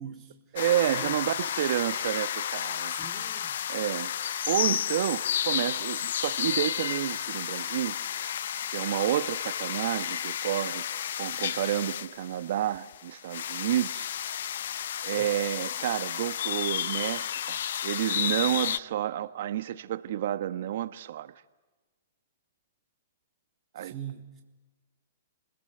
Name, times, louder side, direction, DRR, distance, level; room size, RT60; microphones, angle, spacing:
voice 1, 0.0-0.6 0.9-1.2 2.9-3.5 15.2-15.4 23.8-24.4, right 9 dB, 25° right, 3.6 m, -42 dB
voice 2, 0.5-2.9 3.7-7.9 8.7-14.1 15.0-21.3 23.7-23.9, right 12 dB, 60° right, 1.3 m, -30 dB
sound 1, 0.6-18.8, left 10 dB, 70° left, 0.8 m, -32 dB
29.5 x 21.0 x 8.0 m
hypercardioid pair, 130°, 0 cm